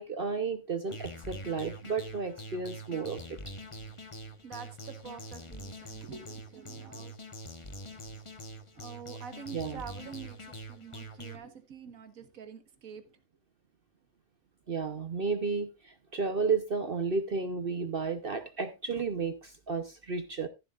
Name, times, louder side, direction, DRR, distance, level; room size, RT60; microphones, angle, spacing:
voice 1, 0.0-3.4 9.5-9.8 14.7-20.5, right 4 dB, 45° right, 1.0 m, -32 dB
sound 1, 0.9-11.4, equal, 25° left, 1.0 m, -44 dB
voice 2, 4.4-7.1 8.8-13.2, right 7 dB, 85° right, 1.7 m, -46 dB
14.0 x 11.0 x 2.4 m
omnidirectional pair, 1.4 m